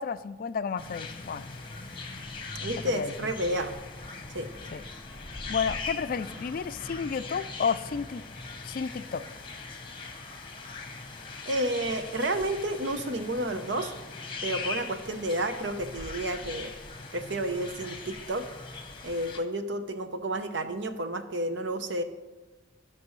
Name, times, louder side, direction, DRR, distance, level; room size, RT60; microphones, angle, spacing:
voice 1, 0.0-1.5 2.8-3.3 4.7-4.8 5.5-8.2 8.6-9.2, left 6 dB, 50° left, 13 dB, 0.3 m, -31 dB
sound 1, 0.8-19.4, left 4 dB, 25° left, 1.0 m, -40 dB
voice 2, 2.6-3.8 4.3-4.5 11.5-13.9 14.4-16.7 17.1-18.4 19.0-22.0, right 1 dB, 70° right, 8 dB, 0.8 m, -31 dB
18.0 x 6.0 x 3.1 m, 1.2 s
head